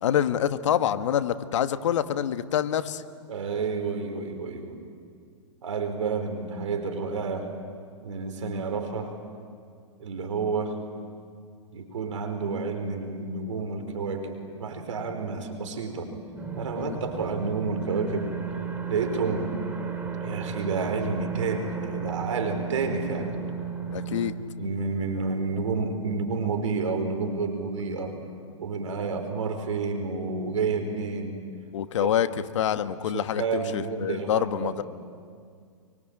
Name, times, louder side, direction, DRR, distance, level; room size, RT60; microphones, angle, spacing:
voice 1, 0.0-3.0 16.7-17.0 23.9-24.3 31.7-32.3 32.5-34.8, left 10 dB, 70° left, 10 dB, 1.4 m, -26 dB
voice 2, 3.3-4.8 5.6-7.5 8.0-9.1 10.0-10.8 11.7-16.1 16.6-18.3 18.9-19.5 20.2-23.4 24.6-28.2 28.6-31.4 32.0-32.1 33.0-34.8, right 4 dB, 75° right, 6 dB, 4.8 m, -30 dB
sound 1, 16.4-24.3, right 6 dB, 10° right, 4.7 m, -34 dB
25.5 x 24.0 x 9.0 m, 2.2 s
hypercardioid pair, 120°, 16 cm